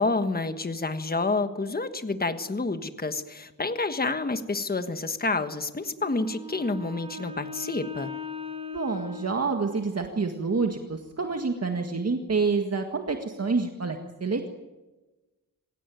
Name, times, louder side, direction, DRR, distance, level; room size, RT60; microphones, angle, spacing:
voice 1, 0.0-8.1, left 3 dB, 25° left, 9 dB, 1.4 m, -29 dB
Wind instrument woodwind instrument, 6.0-10.2, left 3 dB, 15° right, 3.6 m, -39 dB
voice 2, 8.7-14.5, right 4 dB, 45° right, 4 dB, 1.9 m, -28 dB
26.5 x 17.5 x 9.3 m, 1.1 s
wide cardioid pair, 125°, 34 cm